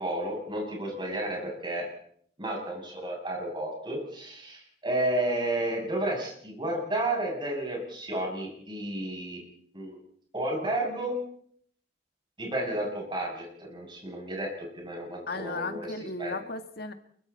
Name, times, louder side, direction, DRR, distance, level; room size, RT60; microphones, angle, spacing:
voice 1, 0.0-1.9 2.4-9.4 9.7-10.0 10.3-11.2 12.4-15.8 16.2-16.4, right 1 dB, 25° right, -1 dB, 7.8 m, -32 dB
voice 2, 15.3-16.9, left 3 dB, 55° left, 7 dB, 1.7 m, -35 dB
29.0 x 23.5 x 4.3 m, 0.63 s
head